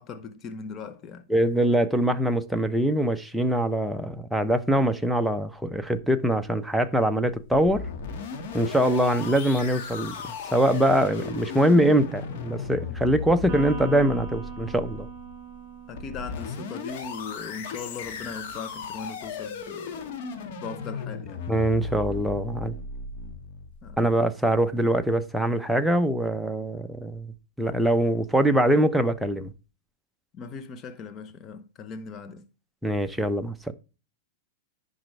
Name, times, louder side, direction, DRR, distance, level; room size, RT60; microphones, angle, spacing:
voice 1, 0.0-1.3 15.9-20.2 20.6-21.4 23.8-24.0 30.3-32.4, left 5 dB, 30° left, 0.9 m, -39 dB
voice 2, 1.3-7.8 8.5-10.2 10.4-15.1 21.5-22.7 24.0-27.3 27.6-29.5 32.8-33.5, right 1 dB, ahead, 0.7 m, -23 dB
sound 1, 7.3-24.1, left 5 dB, 55° left, 1.9 m, -36 dB
Electric guitar, 13.5-17.0, right 7 dB, 40° right, 4.3 m, -40 dB
10.5 x 5.2 x 3.3 m
hypercardioid pair, 135°, 0 cm